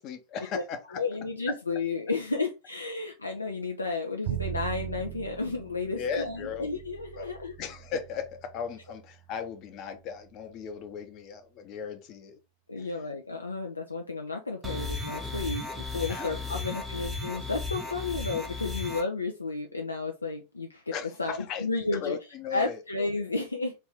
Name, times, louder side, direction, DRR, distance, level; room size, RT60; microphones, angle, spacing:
voice 1, 0.0-1.0 1.5-1.6 6.0-6.7 7.1-7.3 7.6-12.4 12.8-12.9 16.1-16.7 20.9-21.7 21.9-22.8, left 6 dB, 40° left, 0.7 m, -37 dB
voice 2, 1.0-7.5 12.7-20.9 21.2-22.2 22.5-23.7, left 3 dB, 80° left, 0.4 m, -32 dB
Bowed string instrument, 4.2-10.4, right 14 dB, 45° right, 0.3 m, -40 dB
sound 1, 14.6-19.0, left 3 dB, 10° right, 0.8 m, -35 dB
3.2 x 2.6 x 3.4 m
figure-of-eight pair, 90°, 0 cm